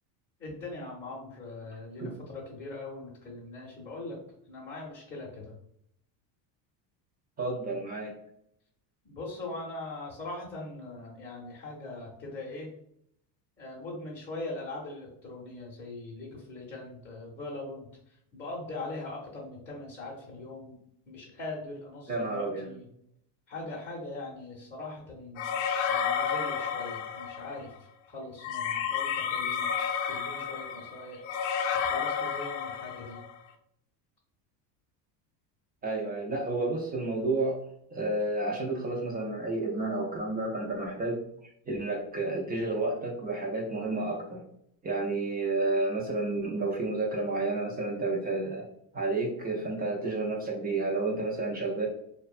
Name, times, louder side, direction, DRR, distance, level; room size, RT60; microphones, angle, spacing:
voice 1, 0.4-2.1 2.3-4.2 4.5-5.5 9.1-12.7 13.6-17.9 18.3-20.8 21.1-22.8 23.5-25.5 25.9-27.7 28.1-29.7 30.1-31.2 31.8-33.2, left 2 dB, 20° left, -6 dB, 0.6 m, -41 dB
voice 2, 7.4-8.1 22.1-22.7 35.8-37.6 37.9-44.4 44.8-48.6 48.9-51.9, right 2 dB, 20° right, -1 dB, 0.3 m, -31 dB
sound 1, 25.4-27.6 28.4-33.3, left 7 dB, 75° left, 0.5 m, -31 dB
2.4 x 2.2 x 2.4 m, 0.72 s
supercardioid pair, 110°, 48 cm